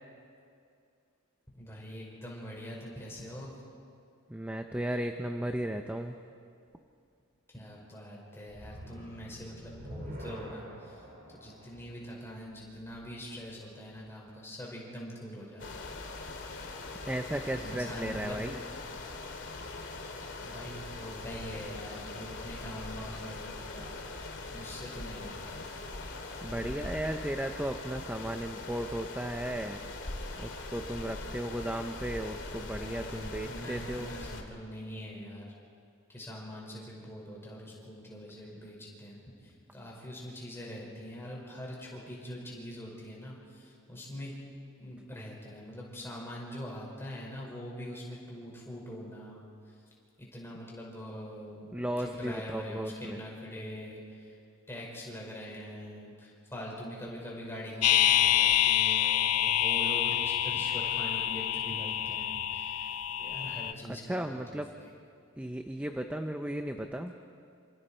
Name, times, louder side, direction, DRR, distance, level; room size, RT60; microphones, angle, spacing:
voice 1, 1.5-3.5 7.5-11.0 11.4-15.9 17.6-18.4 20.4-25.6 32.6-35.5 36.1-44.3 44.8-49.8 50.2-54.4 54.7-62.9 63.2-64.9, equal, 10° left, -4 dB, 5.4 m, -43 dB
voice 2, 4.3-6.2 17.1-18.6 26.4-29.8 30.4-34.1 51.7-53.2 64.1-64.7 65.4-67.1, right 1 dB, 5° right, 5 dB, 0.6 m, -35 dB
sound 1, 8.4-13.7, equal, 45° right, 4.6 m, -47 dB
sound 2, 15.6-34.4, left 2 dB, 55° left, 2.4 m, -41 dB
sound 3, 57.8-63.7, left 12 dB, 90° left, 0.6 m, -27 dB
27.5 x 26.5 x 4.5 m, 2.4 s
head